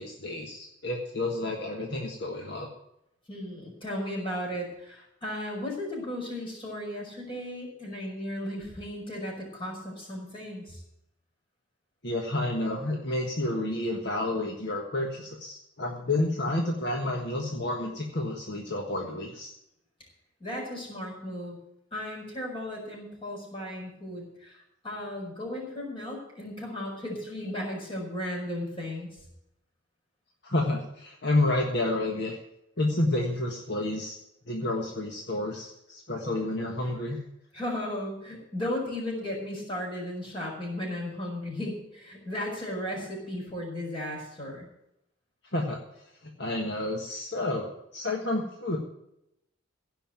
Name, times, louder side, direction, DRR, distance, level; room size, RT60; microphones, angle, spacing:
voice 1, 0.0-2.7 12.0-19.5 30.4-32.4 32.8-34.2 34.5-37.2 45.5-45.8 46.4-48.8, left 2 dB, 55° left, 0 dB, 1.5 m, -30 dB
voice 2, 3.3-10.8 20.4-21.6 21.9-29.2 37.5-44.7, left 1 dB, 25° left, -2 dB, 5.5 m, -35 dB
16.5 x 5.6 x 9.0 m, 0.81 s
head